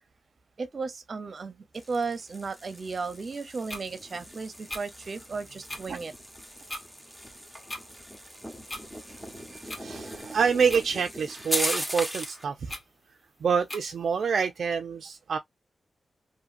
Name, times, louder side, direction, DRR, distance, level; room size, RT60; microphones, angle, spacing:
voice 1, 0.6-6.1, right 4 dB, 55° right, 0.7 m, -35 dB
sound 1, 1.7-12.4, equal, 5° left, 0.9 m, -38 dB
sound 2, 3.7-3.8 4.7-4.8 5.7-5.8 6.7-6.8 7.7-7.8 8.7-8.8 9.7-9.8 10.7-10.8 11.7-11.8 12.7-12.8 13.7-13.8, left 1 dB, 25° left, 1.1 m, -37 dB
voice 2, 9.5-12.7 13.4-15.4, right 6 dB, 80° right, 0.4 m, -27 dB
2.8 x 2.6 x 2.5 m
cardioid pair, 80°, 0 cm